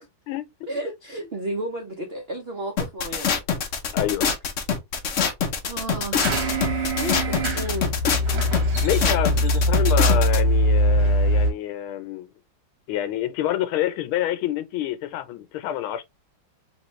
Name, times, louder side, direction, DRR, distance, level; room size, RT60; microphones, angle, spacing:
voice 1, 0.7-3.4 5.7-8.0, right 1 dB, 75° right, 0.5 m, -33 dB
sound 1, 2.8-10.4, left 6 dB, 65° left, 0.7 m, -25 dB
voice 2, 3.9-4.2 8.8-12.3 12.9-16.0, left 12 dB, 85° left, 1.5 m, -27 dB
sound 2, 6.2-11.5, equal, 40° right, 1.2 m, -21 dB
3.7 x 3.0 x 3.0 m
omnidirectional pair, 2.3 m